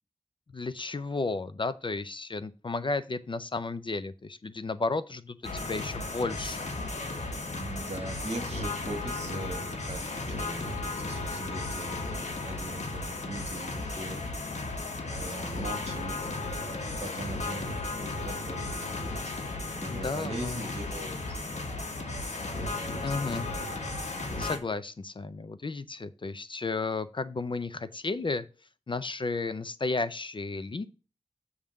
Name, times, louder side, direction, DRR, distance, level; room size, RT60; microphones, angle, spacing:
voice 1, 0.5-6.7 19.9-20.7 23.0-23.5 24.4-28.4 28.9-30.9, left 3 dB, 45° left, 13 dB, 0.5 m, -33 dB
sound 1, 5.4-24.6, left 2 dB, 80° left, 1.5 m, -35 dB
voice 2, 7.5-14.5 15.2-16.2 16.5-19.3 19.8-22.1 22.6-23.5, right 2 dB, 65° right, 4 dB, 1.7 m, -41 dB
7.1 x 3.6 x 6.4 m, 0.33 s
wide cardioid pair, 85°, 12 cm